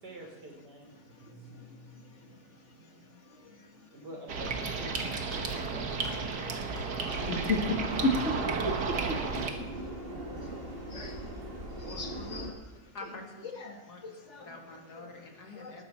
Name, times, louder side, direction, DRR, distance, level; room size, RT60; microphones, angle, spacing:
voice 1, 0.0-0.9 1.4-1.5 3.9-6.5, right 1 dB, 90° right, 4.2 m, -47 dB
voice 2, 1.1-2.0 2.3-2.4 3.3-3.9 7.2-9.9 10.4-10.5 10.9-11.2 11.5-12.6 13.5-14.5 15.6-15.8, left 2 dB, 45° left, 1.8 m, -35 dB
sound 1, 4.3-9.5, right 4 dB, 75° right, 1.9 m, -33 dB
sound 2, 5.3-5.7 6.0-6.3 6.7-7.1 7.5-8.9 9.3-9.7, left 1 dB, ahead, 2.5 m, -52 dB
Subway metro underground, 7.1-12.5, right 1 dB, 35° right, 2.0 m, -40 dB
voice 3, 12.9-13.5 13.9-14.0 14.4-15.8, left 2 dB, 70° left, 2.7 m, -46 dB
19.0 x 12.5 x 4.3 m
omnidirectional pair, 1.8 m